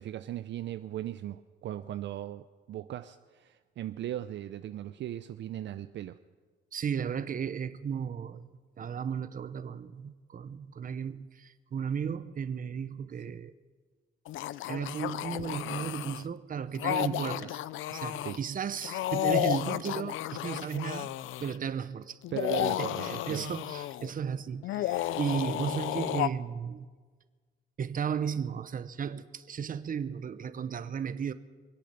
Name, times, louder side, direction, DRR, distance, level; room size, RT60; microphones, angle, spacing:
voice 1, 0.0-6.2 18.2-18.4 22.3-23.5, right 12 dB, 65° right, 10 dB, 0.5 m, -38 dB
voice 2, 6.7-8.5 8.8-13.5 14.7-17.6 17.9-21.1 21.4-22.2 22.6-26.9 27.8-31.3, right 7 dB, 45° right, 13 dB, 0.9 m, -35 dB
sound 1, 14.3-16.2 16.7-18.4 18.8-21.5 22.2-24.1 24.6-26.3, left 14 dB, 80° left, 0.5 m, -32 dB
24.0 x 8.5 x 6.9 m, 1.4 s
cardioid pair, 90°, 20 cm